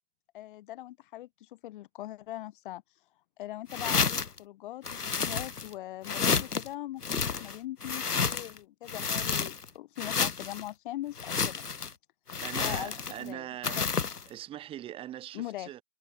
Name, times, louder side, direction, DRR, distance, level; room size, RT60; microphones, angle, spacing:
voice 1, 0.3-2.8 3.4-11.7 12.6-13.8 15.3-15.7, left 15 dB, 35° left, 2.6 m, -41 dB
sound 1, 3.7-4.4 4.8-5.7 6.0-6.7 7.0-8.6 8.9-9.7 10.0-10.6 11.2-11.9 12.3-13.3 13.6-14.2, left 5 dB, 85° left, 1.9 m, -30 dB
voice 2, 12.4-13.8 14.3-15.8, right 12 dB, 10° right, 1.9 m, -41 dB
hypercardioid pair, 145°, 45 cm